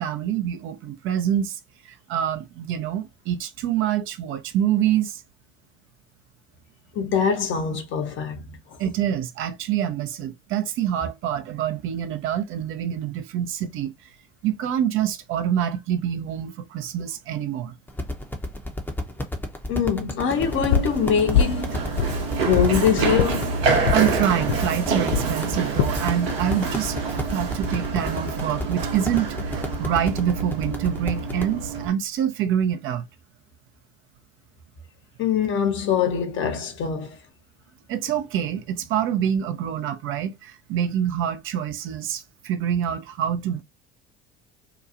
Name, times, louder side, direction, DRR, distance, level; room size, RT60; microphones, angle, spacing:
voice 1, 0.0-5.2 8.8-13.9 14.4-17.7 23.9-33.0 37.9-43.6, right 10 dB, 45° right, 0.5 m, -26 dB
voice 2, 6.9-8.4 19.7-23.6 35.2-37.2, left 7 dB, 40° left, 0.7 m, -24 dB
sound 1, 17.9-31.5, left 1 dB, 5° left, 0.7 m, -32 dB
Run, 20.3-31.9, right 4 dB, 70° right, 0.8 m, -27 dB
sound 2, 20.7-21.0 21.3-21.6 22.0-22.8 23.2-23.3 23.8-24.1 24.5-24.6 25.1-25.3 25.8-26.0 26.5-26.9, left 9 dB, 65° left, 0.5 m, -23 dB
2.8 x 2.3 x 2.5 m
figure-of-eight pair, 65°, 30 cm